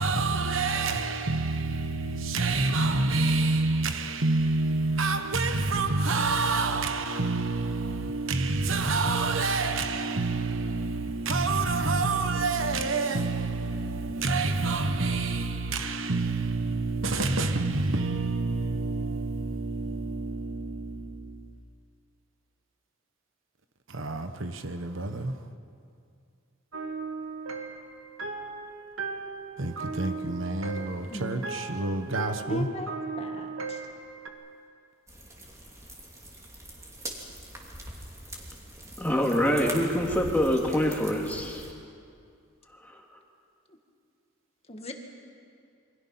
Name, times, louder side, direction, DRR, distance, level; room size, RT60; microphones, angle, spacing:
voice 1, 0.0-21.5 23.9-25.4 29.6-32.7, right 3 dB, 65° right, 1.3 m, -28 dB
sound 1, 26.7-34.3, right 4 dB, 85° right, 2.1 m, -37 dB
voice 2, 31.1-31.5 32.4-33.9 44.7-44.9, left 1 dB, 30° left, 2.0 m, -37 dB
sound 2, 35.1-41.7, right 1 dB, 15° right, 3.2 m, -42 dB
voice 3, 39.0-41.6, equal, 10° left, 2.7 m, -25 dB
28.5 x 24.0 x 5.8 m
head